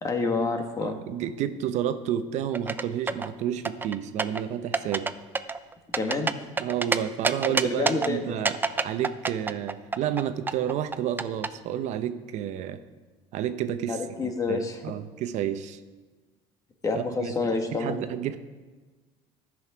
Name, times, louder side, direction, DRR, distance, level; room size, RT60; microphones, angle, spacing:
voice 1, 0.0-1.0 5.9-6.4 7.5-8.4 13.9-14.8 16.8-18.0, left 3 dB, 25° left, 5 dB, 1.5 m, -28 dB
voice 2, 0.8-5.1 6.6-12.8 13.3-15.8 16.9-18.4, right 10 dB, 65° right, 10 dB, 0.7 m, -30 dB
sound 1, 2.5-3.3 3.7-4.4 4.7-5.1 5.4-7.0 7.2-8.1 8.5-11.5, right 4 dB, 15° right, 0.5 m, -26 dB
13.5 x 6.2 x 4.9 m, 1.3 s
cardioid pair, 110°, 13 cm